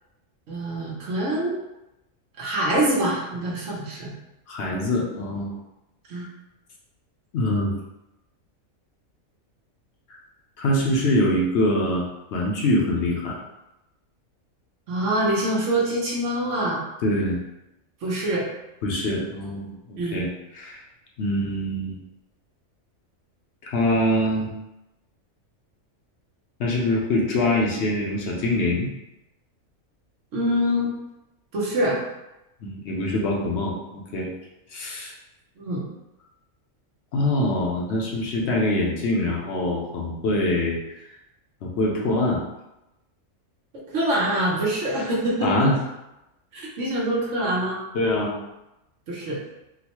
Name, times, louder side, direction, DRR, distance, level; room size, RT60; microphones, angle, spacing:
voice 1, 0.5-1.5 2.4-4.1 6.1-6.3 14.9-16.8 18.0-18.5 20.0-20.2 30.3-30.9 31.5-32.0 35.6-35.8 43.9-45.7 46.5-47.8 49.1-49.4, right 1 dB, 65° right, -4 dB, 1.1 m, -25 dB
voice 2, 4.5-5.5 7.3-7.8 10.6-12.0 12.3-13.4 17.0-17.4 18.8-20.8 21.2-22.0 23.6-24.5 26.6-28.9 32.6-34.3 34.7-35.1 37.1-40.8 41.6-42.4 45.4-45.8 47.9-48.4, left 1 dB, 60° left, -2 dB, 0.8 m, -24 dB
3.9 x 2.1 x 2.9 m, 0.94 s
omnidirectional pair, 1.4 m